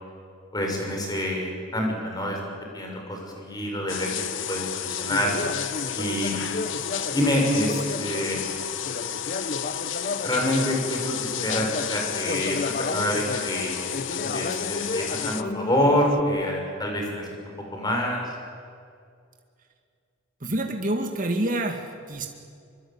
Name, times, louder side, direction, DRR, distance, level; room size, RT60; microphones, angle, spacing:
voice 1, 0.5-2.4 2.7-4.1 4.5-5.3 5.9-6.4 7.1-8.4 10.2-13.8 14.2-17.3 17.7-18.3, equal, 20° left, 1 dB, 6.5 m, -26 dB
sound 1, 3.9-15.4, left 9 dB, 70° left, 1.0 m, -32 dB
Conversation, 5.1-10.8 11.3-16.2, left 3 dB, 45° left, 0.8 m, -33 dB
voice 2, 20.4-22.3, right 1 dB, 45° right, 3 dB, 2.2 m, -27 dB
26.0 x 24.0 x 9.0 m, 2.3 s
head